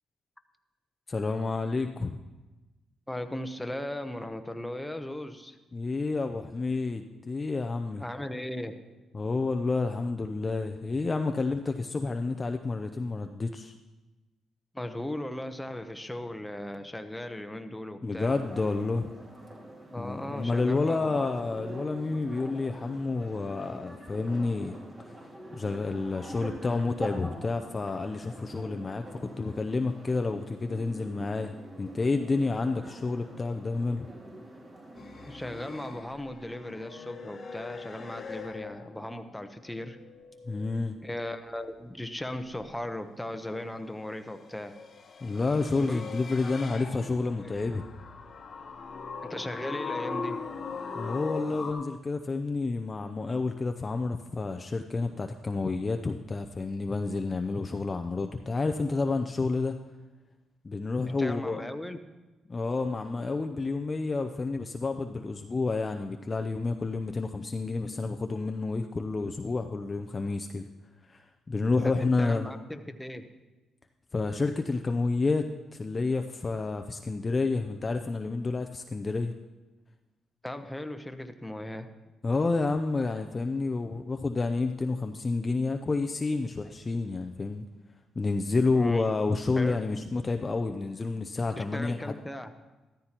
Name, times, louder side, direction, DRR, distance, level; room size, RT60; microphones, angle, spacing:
voice 1, 1.1-2.2 5.7-8.0 9.1-13.7 18.0-19.1 20.0-24.8 25.5-29.0 29.4-34.1 40.5-41.0 45.2-47.8 51.0-59.7 60.6-61.6 62.5-70.7 71.1-71.2 71.5-72.5 74.1-75.5 75.7-79.3 82.2-87.7 88.2-92.2, left 3 dB, 30° left, 5 dB, 0.5 m, -29 dB
voice 2, 3.1-5.6 8.0-8.8 14.7-18.4 19.9-21.5 35.2-40.0 41.0-44.8 45.8-46.0 46.4-46.5 47.4-47.6 49.2-50.5 61.2-62.0 71.8-73.3 80.4-81.9 88.7-89.0 89.5-89.8 91.6-92.5, left 1 dB, 5° left, 7 dB, 0.9 m, -37 dB
sound 1, 18.2-36.0, right 1 dB, 35° right, 2.6 m, -45 dB
sound 2, 34.9-39.4 39.7-40.8 44.1-51.7, left 4 dB, 50° left, 1.1 m, -41 dB
13.5 x 13.0 x 3.0 m, 1.1 s
cardioid pair, 90°, 0 cm